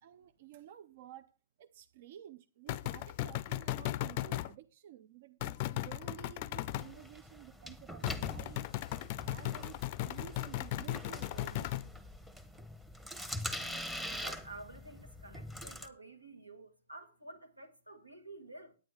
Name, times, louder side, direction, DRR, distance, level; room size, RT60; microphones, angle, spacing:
voice 1, 0.0-8.7 9.2-11.8, right 11 dB, 50° right, 0.5 m, -53 dB
sound 1, 2.7-4.5 5.4-6.9 8.0-11.9, left 15 dB, 40° left, 0.4 m, -37 dB
sound 2, 6.6-15.9, left 1 dB, 5° right, 1.0 m, -44 dB
voice 2, 14.0-18.8, right 2 dB, 90° right, 1.9 m, -51 dB
9.4 x 9.2 x 4.8 m
figure-of-eight pair, 115°, 0 cm